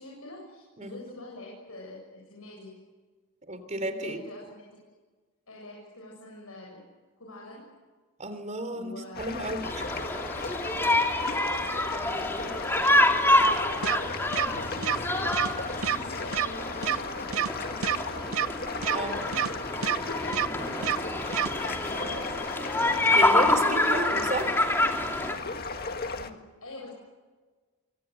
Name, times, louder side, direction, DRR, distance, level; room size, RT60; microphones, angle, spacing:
voice 1, 0.0-2.8 4.0-4.8 5.5-6.8 7.2-7.7 8.7-9.2 11.0-12.8 13.3-18.4 18.9-19.9 20.2-21.0 21.8-24.0 26.2-26.9, left 1 dB, 80° left, -2 dB, 7.7 m, -45 dB
voice 2, 3.5-4.2 8.2-9.9 18.9-19.1 23.2-24.5, right 1 dB, 35° right, 10 dB, 3.5 m, -32 dB
sound 1, 9.1-26.3, left 4 dB, 45° left, 1.8 m, -36 dB
sound 2, 9.6-25.3, left 1 dB, 10° left, 2.6 m, -27 dB
sound 3, 13.8-14.0 14.3-14.5 14.8-15.0 15.3-15.5 15.8-16.0 16.3-16.5 16.8-17.0 17.3-17.5 17.8-18.0 18.3-18.5 18.8-19.0 19.3-19.5 19.8-20.0 20.3-20.5 20.8-21.0 21.3-21.5, right 9 dB, 75° right, 0.8 m, -26 dB
27.5 x 24.0 x 8.1 m, 1.4 s
head